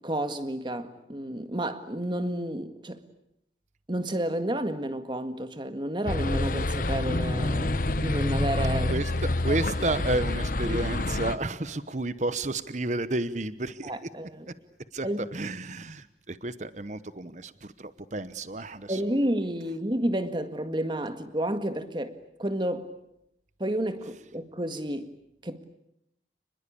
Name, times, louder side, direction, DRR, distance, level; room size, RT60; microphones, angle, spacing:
voice 1, 0.0-3.0 3.9-9.0 9.9-10.0 10.7-10.8 13.8-14.5 15.0-15.3 18.9-22.9 23.6-25.1 25.4-25.6, right 1 dB, 25° right, 1.8 m, -31 dB
sound 1, 6.1-11.4, left 2 dB, 50° left, 1.0 m, -27 dB
voice 2, 8.9-13.9 14.9-19.0, right 2 dB, 40° right, 1.0 m, -31 dB
30.0 x 21.0 x 8.6 m
head